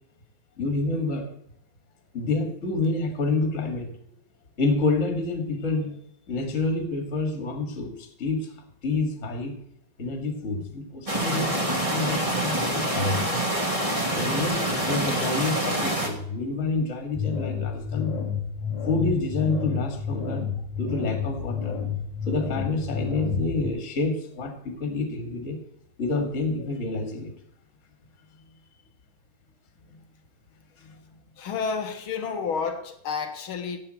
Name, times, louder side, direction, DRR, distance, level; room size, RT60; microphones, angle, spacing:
voice 1, 0.6-1.3 2.1-3.9 4.6-6.0 6.3-8.5 8.8-9.6 10.0-13.3 14.1-18.1 18.9-20.5 20.8-21.8 22.3-25.6 26.0-27.3 29.9-30.0 30.8-30.9, left 3 dB, 25° left, 4 dB, 2.2 m, -28 dB
sound 1, 11.1-16.1, right 1 dB, 15° right, 1.8 m, -26 dB
sound 2, 17.1-23.7, left 7 dB, 85° left, 3.7 m, -30 dB
voice 2, 31.4-33.8, left 5 dB, 50° left, 6 dB, 1.9 m, -31 dB
16.0 x 8.5 x 4.4 m, 0.74 s
omnidirectional pair, 3.5 m